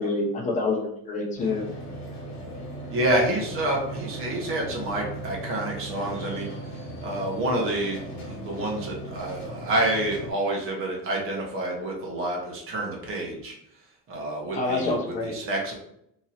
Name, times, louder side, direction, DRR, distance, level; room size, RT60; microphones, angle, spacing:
voice 1, 0.0-1.6 14.5-15.3, left 3 dB, 20° left, -1 dB, 0.7 m, -27 dB
sound 1, 1.4-10.3, right 1 dB, 45° left, 1.4 m, -38 dB
voice 2, 2.9-6.5 7.0-13.5 14.1-15.7, right 1 dB, 35° right, -1 dB, 1.0 m, -28 dB
3.0 x 2.7 x 4.1 m, 0.75 s
cardioid pair, 175°, 35 cm